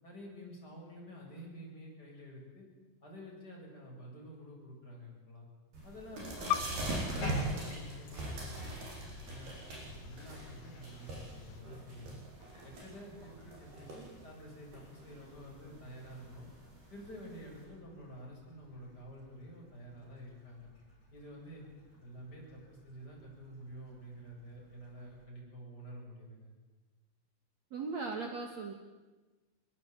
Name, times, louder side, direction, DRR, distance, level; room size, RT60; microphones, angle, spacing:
voice 1, 0.0-2.7 3.0-5.4 5.8-8.8 9.3-9.5 9.9-12.2 12.6-16.5 16.9-20.7 21.1-21.6 22.0-26.5, equal, 25° left, -2 dB, 8.2 m, -49 dB
sound 1, 5.7-17.6, right 1 dB, 80° right, 9.4 m, -42 dB
sound 2, 6.4-11.6, left 11 dB, 75° left, 2.9 m, -43 dB
Bathtub (filling or washing), 6.9-25.2, left 2 dB, 50° left, 7.7 m, -52 dB
voice 2, 27.7-28.7, right 4 dB, 50° right, 3 dB, 2.8 m, -38 dB
26.0 x 22.0 x 9.1 m, 1.2 s
omnidirectional pair, 4.4 m